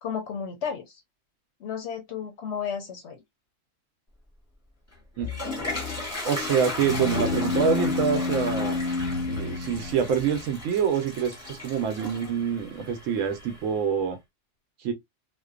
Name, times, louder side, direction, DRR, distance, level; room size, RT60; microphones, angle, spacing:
voice 1, 0.0-1.0 1.6-3.2, left 7 dB, 65° left, 0.8 m, -33 dB
Toilet flush, 4.9-13.8, left 3 dB, 15° left, 0.8 m, -35 dB
voice 2, 6.2-8.8 9.3-14.2 14.8-14.9, right 7 dB, 80° right, 1.0 m, -26 dB
sound 1, 6.8-10.5, left 3 dB, 90° left, 1.0 m, -29 dB
2.5 x 2.2 x 2.2 m
omnidirectional pair, 1.3 m